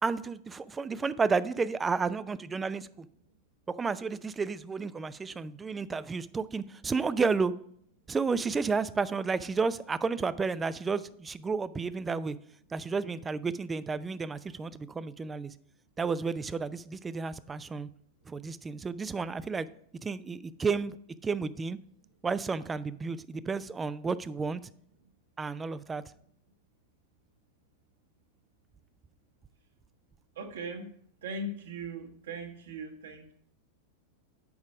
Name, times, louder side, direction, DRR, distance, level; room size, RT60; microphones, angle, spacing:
voice 1, 0.0-3.1 3.7-7.5 8.1-12.4 12.7-15.5 16.0-17.9 18.3-19.7 20.0-21.0 21.2-21.8 22.2-24.6 25.4-26.0, right 4 dB, 15° right, 16 dB, 0.3 m, -31 dB
voice 2, 30.3-30.9 31.2-33.3, right 2 dB, 60° right, 2 dB, 1.3 m, -39 dB
7.0 x 5.2 x 4.9 m, 0.65 s
figure-of-eight pair, 90°, 0 cm